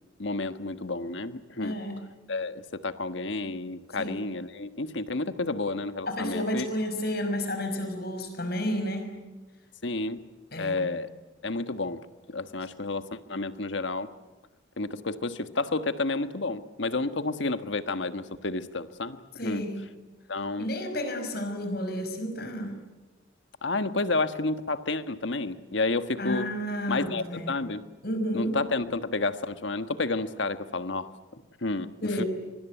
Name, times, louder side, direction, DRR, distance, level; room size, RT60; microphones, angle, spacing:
voice 1, 0.2-1.8 2.3-6.7 9.8-10.2 10.6-11.1 11.4-12.0 12.3-14.1 14.8-19.6 20.3-20.7 23.6-26.5 26.9-27.8 28.3-31.9 32.2-32.3, left 3 dB, 70° left, 10 dB, 1.4 m, -30 dB
voice 2, 1.6-2.0 3.9-4.3 6.1-9.1 10.5-10.8 19.4-19.9 20.6-22.8 26.2-27.5 28.0-28.6 32.0-32.3, equal, 50° left, 7 dB, 5.5 m, -31 dB
24.5 x 24.5 x 9.2 m, 1.1 s
head